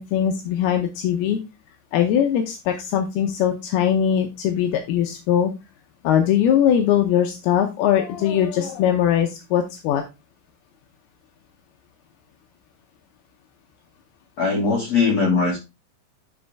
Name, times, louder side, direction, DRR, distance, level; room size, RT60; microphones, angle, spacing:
voice 1, 0.0-1.4 1.9-5.5 6.0-10.0, left 9 dB, 80° left, 4 dB, 2.3 m, -21 dB
voice 2, 14.4-15.6, left 4 dB, 50° left, -3 dB, 2.1 m, -20 dB
11.5 x 4.3 x 3.4 m, 0.25 s
omnidirectional pair, 5.5 m